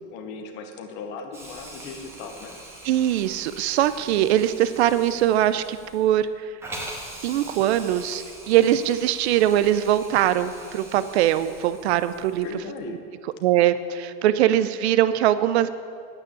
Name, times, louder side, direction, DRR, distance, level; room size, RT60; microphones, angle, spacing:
voice 1, 0.1-2.6 12.4-13.0, left 5 dB, 30° left, 4 dB, 0.9 m, -37 dB
Hiss, 1.3-12.6, right 1 dB, 5° right, 1.2 m, -43 dB
voice 2, 2.8-6.5 7.2-12.5 12.9-13.0 13.4-15.7, right 12 dB, 65° right, 14 dB, 0.7 m, -22 dB
9.8 x 8.9 x 8.5 m, 2.2 s
supercardioid pair, 180°, 36 cm